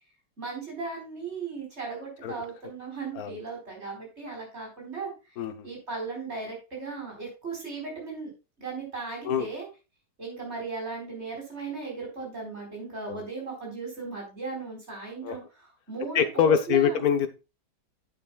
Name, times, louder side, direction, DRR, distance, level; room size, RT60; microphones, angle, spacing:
voice 1, 0.4-5.1 5.6-8.3 8.6-9.7 10.2-17.0, right 4 dB, 40° right, -1 dB, 4.9 m, -37 dB
voice 2, 5.4-5.7 9.2-9.5 13.1-13.2 15.2-15.4 16.1-17.3, left 8 dB, 65° left, 10 dB, 1.4 m, -24 dB
9.8 x 8.8 x 2.3 m, 0.29 s
omnidirectional pair, 1.8 m